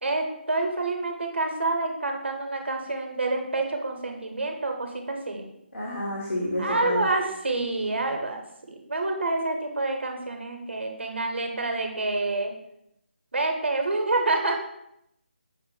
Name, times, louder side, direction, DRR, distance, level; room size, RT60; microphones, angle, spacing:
voice 1, 0.0-5.5 6.6-8.4 8.7-12.5 13.3-14.6, right 2 dB, 70° right, 3 dB, 0.8 m, -28 dB
voice 2, 5.7-7.1, left 1 dB, 75° left, -5 dB, 1.0 m, -29 dB
6.0 x 2.1 x 3.0 m, 0.78 s
figure-of-eight pair, 155°, 6 cm